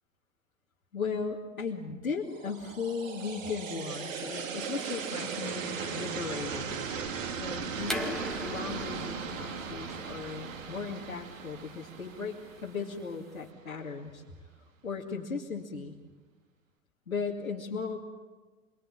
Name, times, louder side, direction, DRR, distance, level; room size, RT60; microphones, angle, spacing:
voice 1, 0.9-6.8 7.3-14.2 14.8-16.0 17.1-18.0, left 5 dB, 85° left, -2 dB, 2.5 m, -37 dB
sound 1, 2.3-13.4, right 6 dB, 70° right, 2.9 m, -38 dB
sound 2, 7.8-13.4, left 1 dB, ahead, 2.1 m, -41 dB
27.0 x 23.0 x 8.9 m, 1.2 s
figure-of-eight pair, 95°, 41 cm